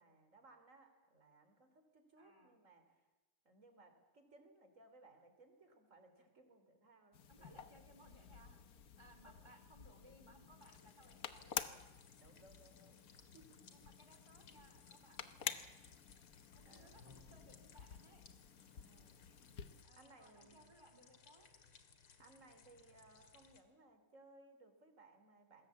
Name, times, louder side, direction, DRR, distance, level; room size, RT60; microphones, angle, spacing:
voice 1, 0.0-3.1 3.4-7.7 9.2-9.5 12.2-13.6 16.7-16.9 18.7-19.4 19.9-20.7 22.2-25.7, right 2 dB, 35° right, 7 dB, 3.7 m, -64 dB
voice 2, 2.2-2.6 7.3-8.6 9.0-11.7 13.7-15.6 16.5-18.2 19.8-21.5, right 1 dB, 10° right, 5 dB, 3.5 m, -64 dB
sound 1, 7.1-19.8, left 7 dB, 50° left, 1.3 m, -50 dB
sound 2, 10.6-23.6, left 6 dB, 75° left, 2.8 m, -65 dB
28.0 x 20.5 x 8.4 m, 1.1 s
omnidirectional pair, 2.4 m